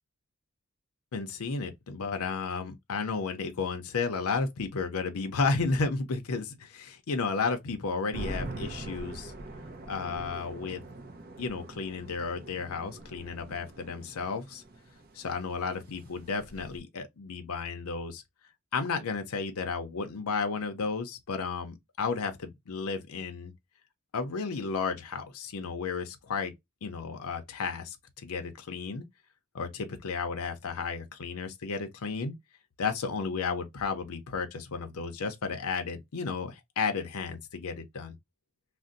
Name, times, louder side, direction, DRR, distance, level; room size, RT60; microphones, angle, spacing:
voice 1, 1.1-9.3 9.9-10.8 11.4-14.6 15.1-18.2 18.7-23.5 24.1-26.5 26.8-28.0 28.2-29.0 29.5-32.3 32.8-38.1, left 4 dB, 75° left, 0.6 m, -33 dB
sound 1, 8.1-16.8, right 2 dB, 40° right, 0.5 m, -43 dB
2.5 x 2.1 x 3.8 m
head